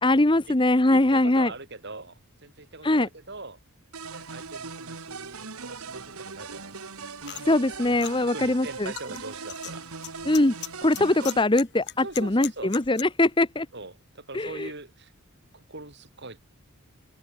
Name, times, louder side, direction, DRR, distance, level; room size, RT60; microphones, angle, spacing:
voice 1, 0.0-1.5 2.8-3.1 7.5-8.9 10.3-10.5 10.8-13.7 14.3-14.7, left 2 dB, 20° left, 1.0 m, -22 dB
voice 2, 0.9-3.6 4.1-6.8 8.2-9.9 11.2-11.4 12.0-12.8 13.7-15.1 15.5-16.4, right 2 dB, 50° right, 4.8 m, -42 dB
sound 1, 3.9-11.4, right 4 dB, 90° right, 2.2 m, -40 dB
comb teeth zip, 7.3-13.0, left 12 dB, 55° left, 4.9 m, -40 dB
head